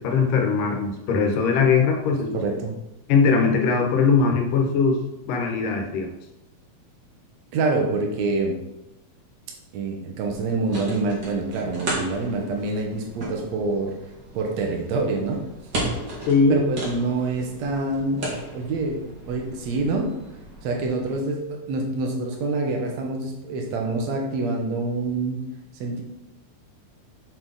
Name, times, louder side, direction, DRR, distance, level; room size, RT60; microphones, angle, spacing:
voice 1, 0.0-2.4 3.1-5.0 5.3-6.1 16.2-16.6, left 5 dB, 75° left, 2 dB, 2.6 m, -20 dB
voice 2, 2.3-2.7 7.5-8.6 9.7-13.9 14.3-15.4 16.5-18.3 18.5-19.0 19.3-20.1 20.6-25.4 25.8-26.0, right 3 dB, 60° right, 1 dB, 2.1 m, -26 dB
sound 1, 10.2-21.1, right 1 dB, 35° right, 2.3 m, -35 dB
6.9 x 6.7 x 4.0 m, 0.90 s
omnidirectional pair, 4.0 m